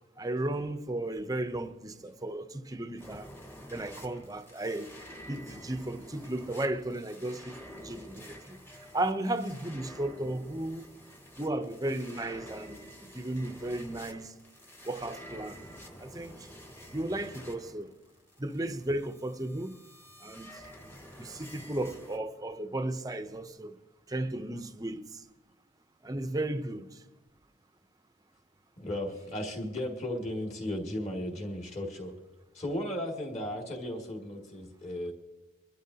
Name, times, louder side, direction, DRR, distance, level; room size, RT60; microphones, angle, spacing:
voice 1, 0.2-3.3 3.7-4.9 5.3-7.6 7.8-8.6 8.9-10.9 11.4-12.9 13.1-14.3 14.9-15.7 16.0-16.4 16.9-17.9 18.4-19.8 20.2-20.6 21.2-23.7 24.1-25.2 26.0-27.0, right 1 dB, 20° right, 0.6 m, -34 dB
sound 1, 3.0-22.2, equal, 10° left, 1.1 m, -49 dB
voice 2, 28.8-32.1 32.5-35.1, left 1 dB, 35° left, 2.1 m, -35 dB
24.0 x 12.5 x 2.8 m
head